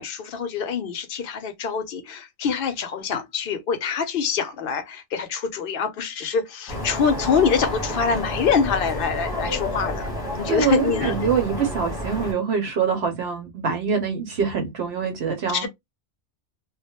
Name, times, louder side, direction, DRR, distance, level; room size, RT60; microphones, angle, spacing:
voice 1, 0.0-10.1 10.4-11.1 15.5-15.7, left 6 dB, 60° left, 0.7 m, -25 dB
sound 1, 6.7-12.3, left 1 dB, 20° left, 0.8 m, -30 dB
voice 2, 10.4-15.7, right 6 dB, 65° right, 0.9 m, -24 dB
2.3 x 2.1 x 2.8 m
omnidirectional pair, 1.2 m